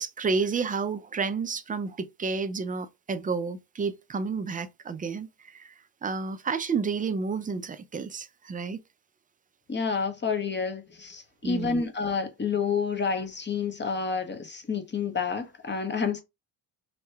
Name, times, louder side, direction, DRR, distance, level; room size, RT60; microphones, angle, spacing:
voice 1, 0.0-5.7 6.0-8.8 11.4-11.9, right 5 dB, 20° right, 0.3 m, -31 dB
voice 2, 9.7-16.2, left 5 dB, 25° left, 0.8 m, -29 dB
2.9 x 2.2 x 3.1 m
supercardioid pair, 60°, 44 cm